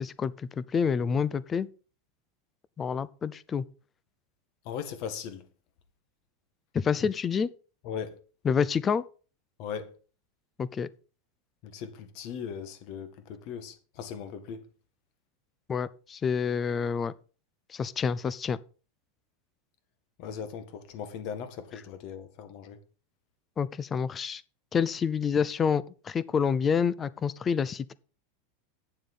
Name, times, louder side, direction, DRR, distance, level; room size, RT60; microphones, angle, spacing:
voice 1, 0.0-1.7 2.8-3.6 6.7-7.5 8.4-9.0 10.6-10.9 15.7-17.1 17.7-18.6 23.6-24.4 24.7-27.9, left 6 dB, 20° left, 0.5 m, -28 dB
voice 2, 4.7-5.5 7.8-8.2 9.6-9.9 11.6-14.7 20.2-22.8, left 7 dB, 45° left, 1.9 m, -38 dB
8.9 x 7.3 x 5.5 m
supercardioid pair, 160°, 0 cm